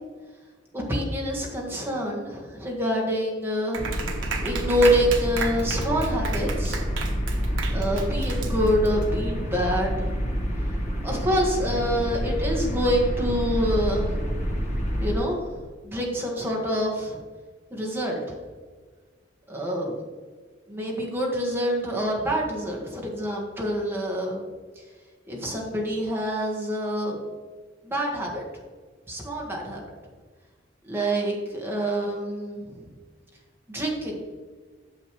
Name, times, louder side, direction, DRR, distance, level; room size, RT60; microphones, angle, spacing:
voice 1, 0.7-3.8 4.4-6.9 7.7-10.2 11.0-14.2 15.0-15.6 15.8-17.2 17.7-18.4 19.5-20.0 20.7-24.4 25.3-27.1 27.8-28.4 29.1-29.8 30.8-32.8 33.7-34.2, equal, 10° right, -2 dB, 1.7 m, -26 dB
Clapping, 3.7-9.0, right 5 dB, 80° right, 1.1 m, -34 dB
sound 1, 3.8-15.2, equal, 40° left, 1.4 m, -28 dB
9.0 x 6.9 x 3.2 m, 1.5 s
head